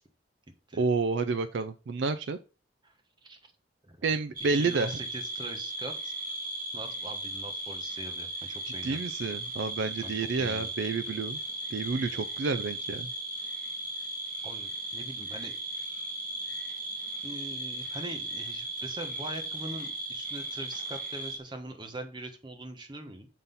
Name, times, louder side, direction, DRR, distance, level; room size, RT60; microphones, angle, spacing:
voice 1, 0.8-2.4 4.0-5.0 8.6-11.4 11.7-13.1, right 4 dB, 70° right, 11 dB, 0.4 m, -30 dB
sound 1, 4.4-21.4, right 1 dB, 45° right, 1.7 m, -37 dB
voice 2, 4.5-6.1 6.7-9.0 10.0-10.7 14.4-15.5 17.2-23.3, right 1 dB, 25° right, 5 dB, 1.3 m, -42 dB
7.4 x 4.1 x 5.4 m, 0.34 s
head